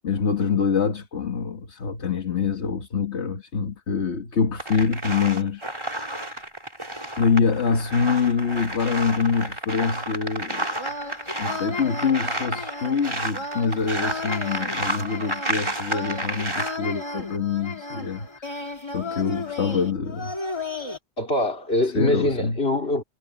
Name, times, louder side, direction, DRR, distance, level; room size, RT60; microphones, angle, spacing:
voice 1, 0.0-6.0 6.3-6.4 7.2-20.4 21.9-22.6, left 5 dB, 80° left, 1.7 m, -25 dB
sound 1, 4.6-16.8, right 1 dB, 25° right, 3.9 m, -31 dB
sound 2, 10.8-21.0, left 2 dB, 25° left, 2.1 m, -34 dB
voice 2, 21.2-23.0, left 2 dB, 65° left, 3.9 m, -23 dB
omnidirectional pair, 1.1 m